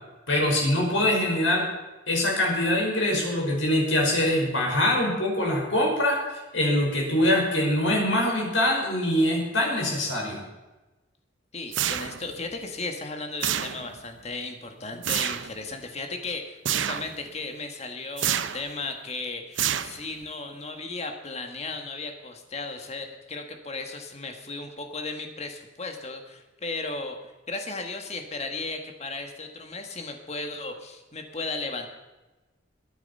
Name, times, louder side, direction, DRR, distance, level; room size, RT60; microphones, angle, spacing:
voice 1, 0.3-1.7 2.1-6.2 6.5-10.4, left 1 dB, 90° left, -1 dB, 5.5 m, -23 dB
voice 2, 11.5-27.2 27.5-31.9, left 3 dB, 35° left, 5 dB, 1.8 m, -35 dB
sound 1, 11.7-12.4 13.4-14.1 15.0-15.5 16.7-17.2 18.2-18.7 19.6-20.2, right 10 dB, 85° right, 0.7 m, -28 dB
22.0 x 9.3 x 5.6 m, 1.1 s
head